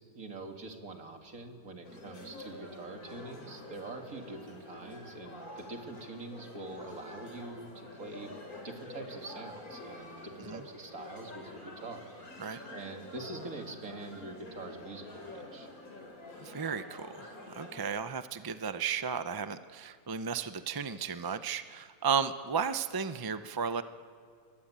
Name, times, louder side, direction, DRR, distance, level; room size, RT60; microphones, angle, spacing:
voice 1, 0.1-8.3 8.6-12.1 12.7-15.7, right 2 dB, 65° right, 3 dB, 2.8 m, -44 dB
sound 1, 1.8-17.8, left 2 dB, 70° left, 4.2 m, -48 dB
voice 2, 16.4-23.8, right 6 dB, 35° right, 11 dB, 0.3 m, -34 dB
29.5 x 22.0 x 8.8 m, 2.2 s
omnidirectional pair, 1.6 m